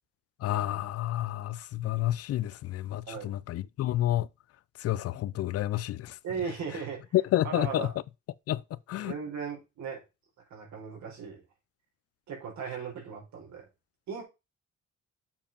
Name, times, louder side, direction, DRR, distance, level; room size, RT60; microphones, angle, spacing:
voice 1, 0.4-4.3 4.8-6.2 7.1-7.9 8.5-8.6 8.9-9.1, left 14 dB, 55° left, 0.4 m, -29 dB
voice 2, 6.2-7.0 7.4-7.9 9.0-10.0 10.5-11.4 12.3-13.6 14.1-14.2, right 6 dB, 70° right, 4.2 m, -37 dB
7.2 x 4.9 x 5.2 m
cardioid pair, 125°, 29 cm